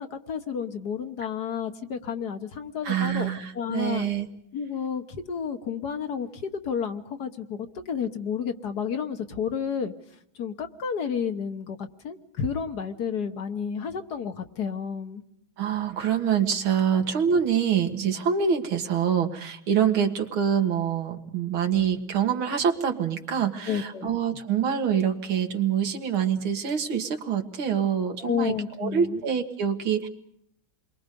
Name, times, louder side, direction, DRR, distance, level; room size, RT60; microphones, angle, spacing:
voice 1, 0.0-3.3 3.6-4.1 4.5-9.9 10.4-15.2 16.9-17.0 23.7-24.1 28.2-29.2, left 7 dB, 55° left, 8 dB, 1.6 m, -31 dB
voice 2, 2.8-4.3 15.6-28.5 28.8-30.1, right 8 dB, 90° right, 6 dB, 2.5 m, -25 dB
28.5 x 22.5 x 5.3 m, 0.71 s
omnidirectional pair, 2.2 m